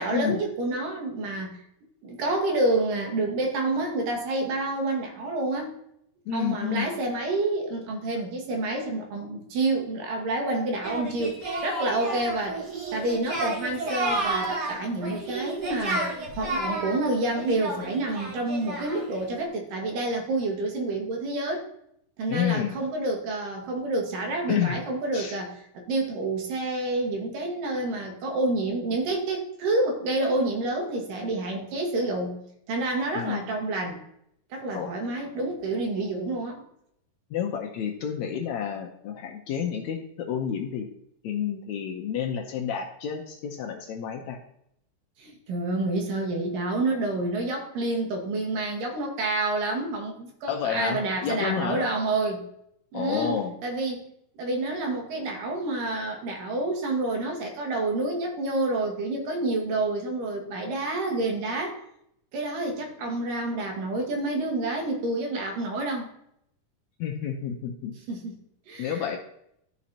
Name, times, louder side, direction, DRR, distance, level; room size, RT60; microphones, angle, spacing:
voice 1, 0.0-1.6 2.0-5.8 6.3-12.6 12.9-21.6 22.2-32.4 32.7-34.0 34.5-36.6 45.2-52.4 52.9-54.1 54.4-61.8 62.3-66.1 68.1-68.4 68.7-69.1, right 2 dB, 80° right, 1 dB, 3.1 m, -28 dB
voice 2, 6.3-6.9 22.3-22.8 24.5-24.7 25.1-25.4 33.1-33.5 34.7-34.9 37.3-40.9 41.2-44.4 50.5-51.8 52.9-53.5 67.0-67.9 68.8-69.2, left 8 dB, 75° left, 3 dB, 1.9 m, -30 dB
Singing, 10.8-19.2, right 2 dB, 40° right, 1.8 m, -31 dB
14.0 x 5.1 x 2.8 m, 0.73 s
omnidirectional pair, 3.8 m